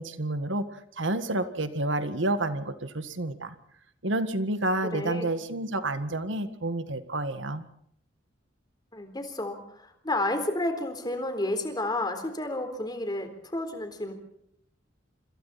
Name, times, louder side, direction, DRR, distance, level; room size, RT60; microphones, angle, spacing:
voice 1, 0.0-3.5 4.0-7.6, right 2 dB, 70° right, 10 dB, 1.8 m, -29 dB
voice 2, 4.8-5.3 8.9-14.1, left 1 dB, 20° left, 7 dB, 3.8 m, -31 dB
27.0 x 26.5 x 4.3 m, 0.71 s
head